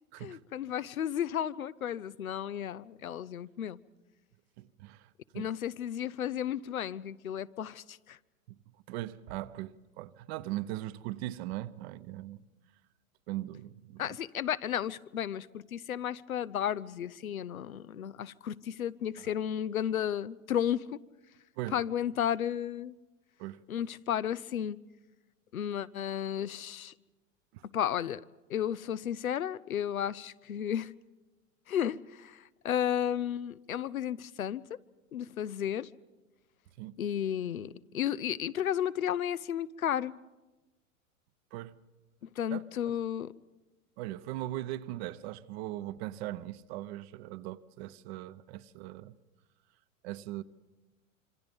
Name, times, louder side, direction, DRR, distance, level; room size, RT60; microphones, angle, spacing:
voice 1, 0.2-3.8 5.3-8.2 14.0-20.9 21.7-22.9 23.7-24.8 25.5-26.9 27.7-28.2 28.5-30.9 31.7-34.8 35.1-35.9 37.0-40.1 42.4-43.3, left 10 dB, 90° left, 0.7 m, -33 dB
voice 2, 4.6-5.1 5.3-5.5 8.5-8.6 8.9-12.4 13.3-14.0 19.2-19.3 21.6-21.8 23.4-23.6 27.5-27.6 36.8-37.0 41.5-41.8 42.5-42.9 44.0-49.2 50.0-50.4, right 15 dB, 50° right, 0.9 m, -39 dB
26.5 x 25.0 x 5.3 m
hypercardioid pair, 105°, 41 cm